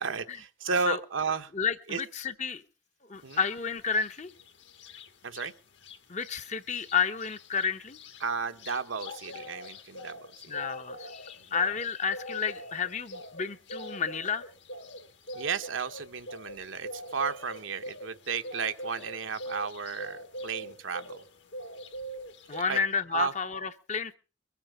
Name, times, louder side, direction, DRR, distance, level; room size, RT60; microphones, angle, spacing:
voice 1, 0.0-1.5 1.9-2.0 3.2-3.4 5.2-5.5 8.2-10.5 15.3-21.2 22.7-22.8 23.1-23.3, right 5 dB, 80° right, 7 dB, 1.1 m, -33 dB
voice 2, 1.5-2.6 3.1-4.3 6.1-8.0 10.5-14.5 22.5-24.1, left 6 dB, 35° left, 9 dB, 0.8 m, -31 dB
sound 1, 3.3-3.5 3.9-5.5 5.8-6.0 6.2-21.3 21.5-22.6, equal, 65° left, 1.5 m, -43 dB
22.5 x 8.6 x 5.5 m, 0.36 s
head